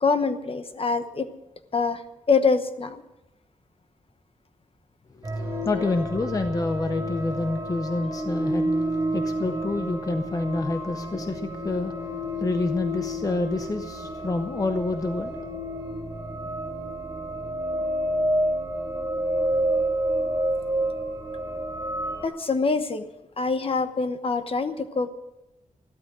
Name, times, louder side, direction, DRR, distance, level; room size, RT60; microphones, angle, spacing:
voice 1, 0.0-1.3 1.7-2.0 2.3-3.0 22.2-23.1 23.4-25.1, left 4 dB, 45° left, 10 dB, 1.0 m, -24 dB
voice 2, 5.2-12.1 12.4-15.5, left 2 dB, 25° left, 8 dB, 0.7 m, -28 dB
sound 1, 5.2-22.3, right 1 dB, 20° right, 3.3 m, -29 dB
14.5 x 12.5 x 6.2 m, 0.92 s
wide cardioid pair, 155°, 13 cm